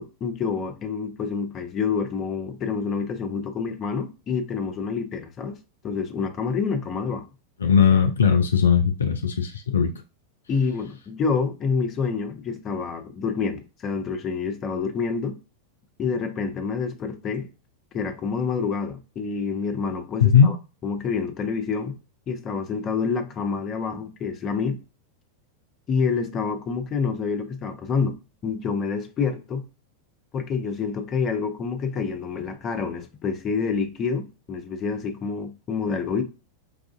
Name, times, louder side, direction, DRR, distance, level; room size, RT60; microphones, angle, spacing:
voice 1, 0.0-5.5 5.8-7.2 10.5-15.4 16.0-17.5 17.9-20.6 20.8-22.0 22.3-24.8 25.9-28.2 28.4-29.6 30.3-36.2, left 5 dB, 30° left, 0.7 m, -27 dB
voice 2, 7.6-9.9 20.2-20.5, left 7 dB, 70° left, 0.3 m, -18 dB
4.7 x 2.4 x 2.4 m
figure-of-eight pair, 90°, 0 cm